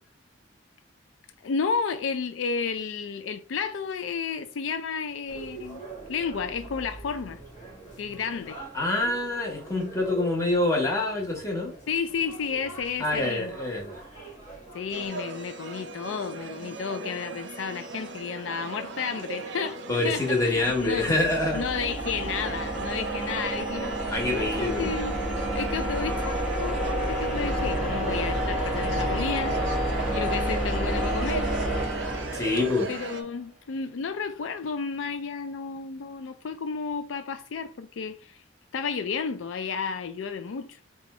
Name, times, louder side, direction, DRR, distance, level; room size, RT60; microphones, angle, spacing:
voice 1, 1.4-5.8 6.1-7.4 8.0-8.6 11.9-13.6 14.7-21.2 21.5-23.9 24.3-25.2 25.5-26.8 27.1-29.6 30.1-31.5 32.9-38.4 38.7-40.8, left 5 dB, 75° left, 0.4 m, -32 dB
sound 1, 5.3-15.1, right 2 dB, 40° left, 1.5 m, -44 dB
voice 2, 8.7-11.7 13.0-14.0 19.9-21.6 24.1-24.9 32.3-32.9, left 2 dB, 15° left, 1.1 m, -26 dB
sound 2, 14.9-33.2, right 3 dB, 65° right, 0.6 m, -38 dB
sound 3, 20.1-33.1, right 1 dB, ahead, 1.5 m, -29 dB
4.2 x 2.4 x 4.2 m
head